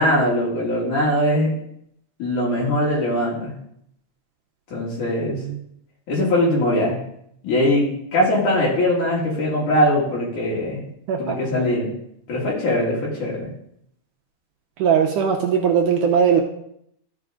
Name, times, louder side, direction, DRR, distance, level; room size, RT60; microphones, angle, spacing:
voice 1, 0.0-1.5 2.2-3.5 4.7-5.4 6.1-7.0 7.4-10.8 11.2-11.9 12.3-13.5, left 1 dB, 60° left, -5 dB, 3.3 m, -21 dB
voice 2, 14.8-16.4, right 7 dB, 75° right, 2 dB, 2.0 m, -19 dB
14.0 x 5.1 x 3.7 m, 0.72 s
omnidirectional pair, 4.1 m